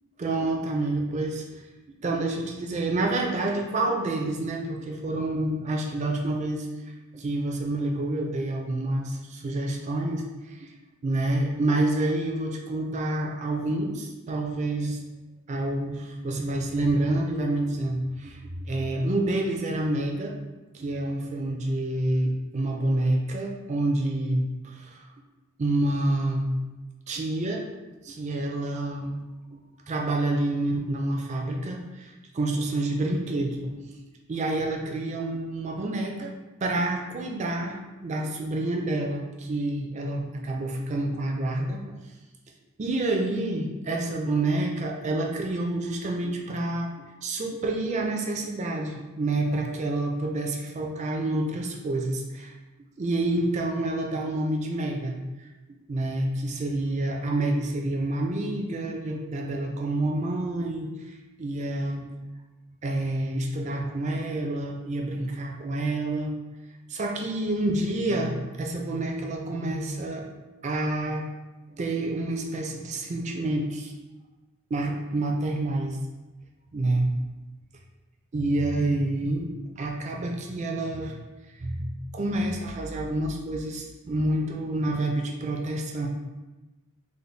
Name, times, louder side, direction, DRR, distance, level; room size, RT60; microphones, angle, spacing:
voice 1, 0.2-1.6 2.0-6.7 7.1-10.7 11.0-15.0 15.5-20.3 20.7-25.1 25.6-26.5 27.1-27.7 28.0-29.2 29.9-34.0 34.3-36.3 36.6-41.9 42.8-46.9 47.2-52.5 53.0-55.5 55.9-62.1 62.8-66.3 66.9-70.2 70.6-71.3 71.7-73.9 74.7-76.0 76.7-77.1 78.3-79.5 79.8-81.2 81.6-86.1, right 2 dB, 30° right, 1 dB, 0.4 m, -28 dB
3.9 x 2.1 x 3.2 m, 1.1 s
head